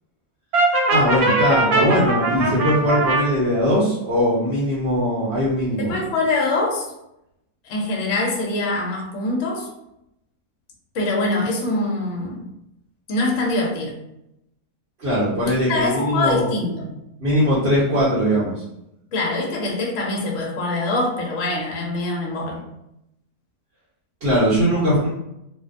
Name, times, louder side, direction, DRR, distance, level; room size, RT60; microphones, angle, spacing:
Brass instrument, 0.5-3.2, right 2 dB, 85° right, 1.1 m, -20 dB
voice 1, 0.9-5.9 15.0-16.5 17.2-18.5 24.2-25.1, equal, 50° right, -10 dB, 0.9 m, -20 dB
voice 2, 5.8-6.9 7.6-9.7 10.9-12.5 13.1-14.0 15.7-16.9 19.1-22.6, left 2 dB, 65° left, -1 dB, 0.9 m, -24 dB
2.6 x 2.0 x 2.4 m, 0.83 s
omnidirectional pair, 1.5 m